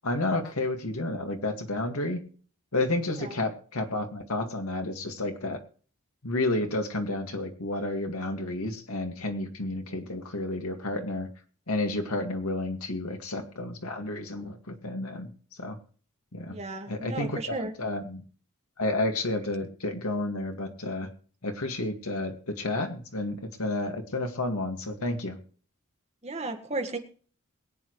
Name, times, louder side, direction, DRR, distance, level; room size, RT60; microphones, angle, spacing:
voice 1, 0.0-2.2 2.7-5.6 6.2-11.3 11.7-15.8 16.3-16.6 16.9-17.3 17.8-18.2 18.8-21.1 21.4-25.4, left 2 dB, 85° left, 4 dB, 2.1 m, -31 dB
voice 2, 16.5-17.7 26.2-27.0, right 2 dB, 30° right, 5 dB, 1.7 m, -34 dB
22.0 x 8.6 x 3.2 m, 0.43 s
head